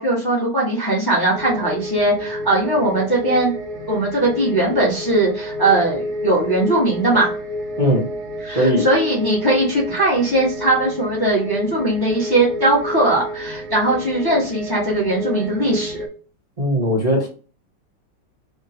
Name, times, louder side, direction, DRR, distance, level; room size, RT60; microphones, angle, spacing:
voice 1, 0.0-3.5 3.9-7.3 8.4-16.0, right 1 dB, 15° left, -4 dB, 0.9 m, -19 dB
sound 1, 1.3-16.1, equal, 55° right, 1.0 m, -29 dB
voice 2, 7.8-8.1 8.5-8.9 16.6-17.3, equal, 25° right, -5 dB, 0.9 m, -19 dB
3.6 x 2.4 x 4.1 m, 0.38 s
omnidirectional pair, 2.0 m